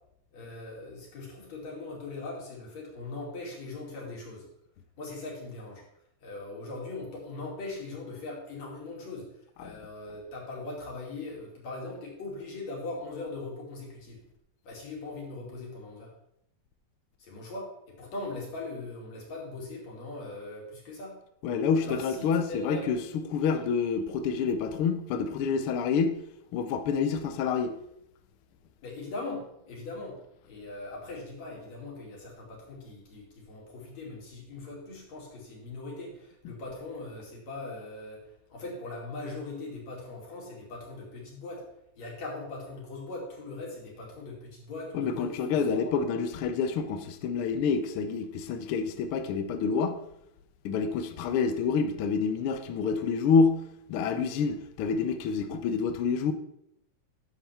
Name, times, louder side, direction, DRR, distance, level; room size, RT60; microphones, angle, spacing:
voice 1, 0.3-4.4 5.0-5.8 6.2-14.2 14.7-16.1 17.2-21.2 21.8-22.9 28.8-30.2 30.5-41.7 42.0-46.0, left 2 dB, 65° left, 3.7 m, -40 dB
voice 2, 21.4-26.2 26.5-27.7 44.9-50.0 50.6-53.6 53.9-56.3, left 5 dB, 90° left, 1.2 m, -27 dB
11.0 x 7.2 x 3.4 m
omnidirectional pair, 3.4 m